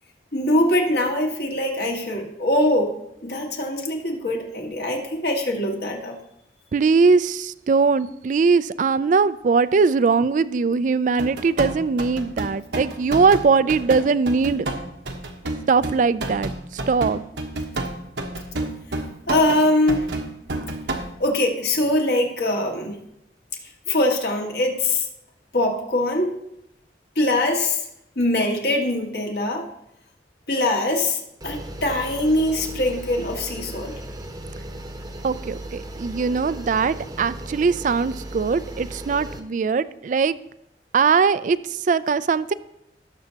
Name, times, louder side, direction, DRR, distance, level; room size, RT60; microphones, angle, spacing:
voice 1, 0.3-2.9 3.2-6.2 19.3-20.1 21.2-22.9 23.9-25.1 25.5-26.3 27.2-27.8 28.2-29.7 30.5-34.0, left 1 dB, 65° left, 1 dB, 1.8 m, -22 dB
voice 2, 6.7-14.7 15.7-16.5 16.9-17.2 35.2-40.3 40.9-42.5, right 5 dB, 45° right, 16 dB, 0.3 m, -20 dB
sound 1, 11.2-21.1, right 2 dB, 85° right, 1.1 m, -30 dB
sound 2, 31.4-39.4, right 1 dB, 20° right, 0.9 m, -36 dB
18.0 x 7.0 x 2.9 m, 0.81 s
head